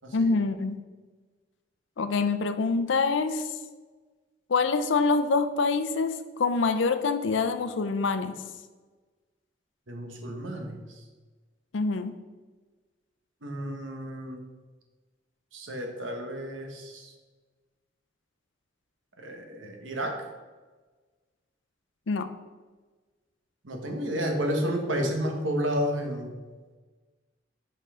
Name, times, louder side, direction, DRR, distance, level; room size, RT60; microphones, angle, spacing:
voice 1, 0.1-0.8 2.0-3.5 4.5-8.3 11.7-12.2 22.1-22.3, left 4 dB, 80° left, 10 dB, 0.5 m, -25 dB
voice 2, 9.9-10.8 13.4-14.4 15.5-17.1 19.2-20.2 23.6-26.4, equal, 90° right, 3 dB, 1.2 m, -31 dB
5.5 x 5.4 x 4.9 m, 1.3 s
head